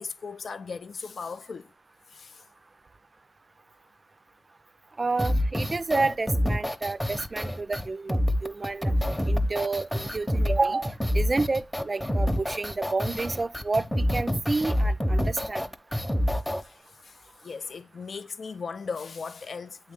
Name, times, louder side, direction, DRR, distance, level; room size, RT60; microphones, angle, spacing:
voice 1, 0.0-1.7 2.1-2.4 16.6-19.9, left 5 dB, 65° left, 0.4 m, -38 dB
voice 2, 5.0-8.9 9.3-15.6, right 3 dB, 40° right, 0.4 m, -29 dB
sound 1, 5.2-16.6, equal, 5° left, 0.7 m, -27 dB
8.5 x 3.1 x 3.6 m
cardioid pair, 60°, 0 cm